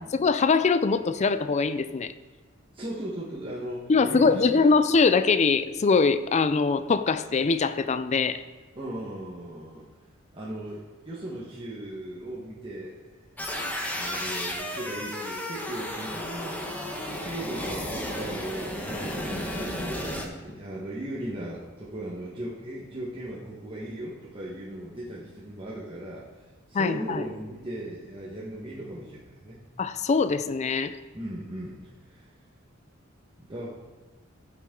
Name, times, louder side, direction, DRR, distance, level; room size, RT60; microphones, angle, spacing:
voice 1, 0.1-2.1 3.9-8.4 26.7-27.2 29.8-31.0, left 4 dB, 35° left, 11 dB, 0.4 m, -23 dB
voice 2, 2.7-4.7 8.7-9.9 10.3-13.0 13.5-26.4 26.7-29.6 31.1-31.8 32.0-32.2 33.4-33.7, right 1 dB, 25° right, -6 dB, 1.3 m, -37 dB
sound 1, 13.4-20.3, left 1 dB, 10° left, 1.1 m, -33 dB
15.0 x 6.1 x 3.8 m, 1.3 s
head